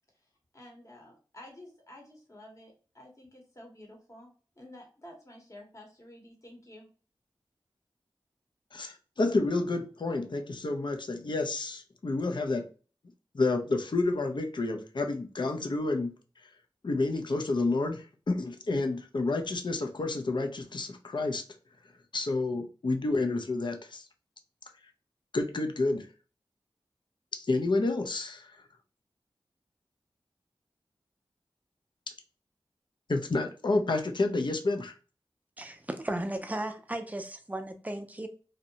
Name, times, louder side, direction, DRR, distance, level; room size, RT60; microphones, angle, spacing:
voice 1, 0.5-4.3 4.6-6.9, left 1 dB, 35° left, 0.9 m, -51 dB
voice 2, 8.7-12.7 13.3-16.1 16.8-21.4 22.1-24.0 25.3-26.1 27.3-28.5 33.1-34.9, left 3 dB, 55° left, 0.5 m, -29 dB
voice 3, 35.6-38.3, right 1 dB, 15° right, 0.4 m, -35 dB
2.6 x 2.1 x 2.8 m
wide cardioid pair, 50°, 10 cm